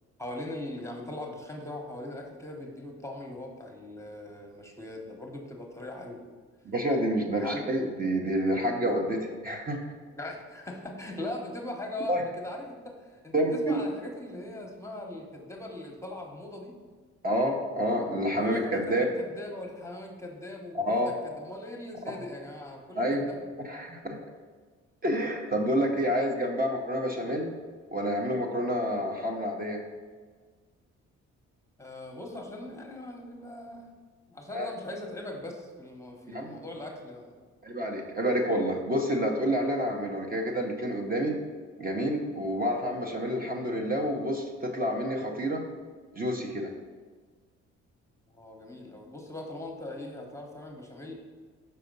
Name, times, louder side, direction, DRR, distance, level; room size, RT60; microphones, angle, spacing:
voice 1, 0.2-6.2 7.4-7.6 8.6-8.7 10.1-16.7 18.4-23.4 31.8-33.8 34.3-37.4 48.3-51.1, left 1 dB, 10° left, 1 dB, 1.1 m, -40 dB
voice 2, 6.6-9.8 12.1-12.2 13.3-13.8 17.2-19.1 20.7-21.1 23.0-23.2 23.6-24.2 25.0-27.5 27.9-29.8 34.5-34.7 36.3-36.5 37.6-41.3 41.8-45.6 46.1-46.7, equal, 30° right, 1 dB, 0.9 m, -28 dB
5.7 x 4.2 x 5.3 m, 1.5 s
cardioid pair, 90°, 30 cm